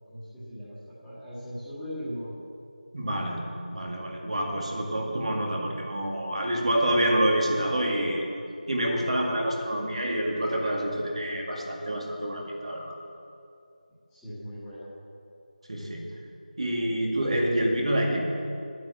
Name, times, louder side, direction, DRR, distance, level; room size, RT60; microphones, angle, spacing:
voice 1, 0.1-2.3 14.1-14.9, equal, ahead, -22 dB, 2.0 m, -39 dB
voice 2, 2.9-8.2 8.7-13.0 15.7-16.0 16.6-18.2, right 1 dB, 45° right, 2 dB, 2.0 m, -27 dB
9.4 x 9.3 x 8.4 m, 2.5 s
figure-of-eight pair, 170°, 5 cm